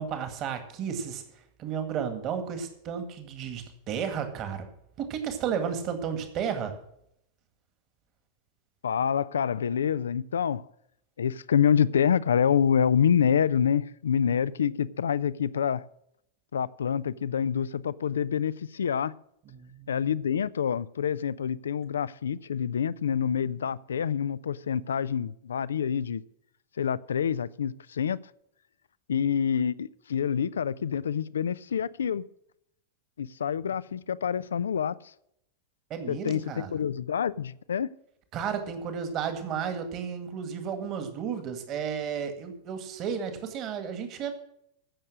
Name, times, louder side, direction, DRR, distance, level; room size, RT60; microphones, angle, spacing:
voice 1, 0.0-4.7 5.0-6.7 19.5-19.9 35.9-36.7 38.3-44.3, right 7 dB, 35° right, 1.9 m, -33 dB
voice 2, 8.8-10.7 11.2-15.8 16.5-19.1 19.9-26.2 26.8-28.2 29.1-32.2 33.2-34.9 36.1-37.9, left 8 dB, 65° left, 0.4 m, -27 dB
15.5 x 6.6 x 6.3 m
figure-of-eight pair, 90°, 0 cm